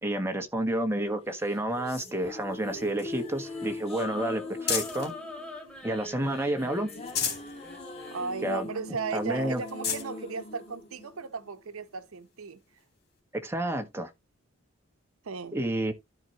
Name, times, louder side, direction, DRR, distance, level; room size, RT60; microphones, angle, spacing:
voice 1, 0.0-5.1 5.8-6.9 8.4-8.7 9.1-9.6 13.3-14.1 15.5-15.9, right 1 dB, 10° right, 1.3 m, -30 dB
sound 1, 1.4-11.8, left 2 dB, 30° left, 2.1 m, -42 dB
sound 2, 2.5-5.2 5.7-6.4 6.8-7.5 8.0-8.1 8.4-8.5 9.2-9.3 9.6-10.1 10.9-11.0 12.8-12.9, left 7 dB, 45° left, 3.2 m, -35 dB
sound 3, 3.1-8.4, left 2 dB, 5° left, 2.4 m, -44 dB
voice 2, 8.1-12.6 15.2-15.6, right 5 dB, 80° right, 0.8 m, -36 dB
13.5 x 4.6 x 2.9 m
head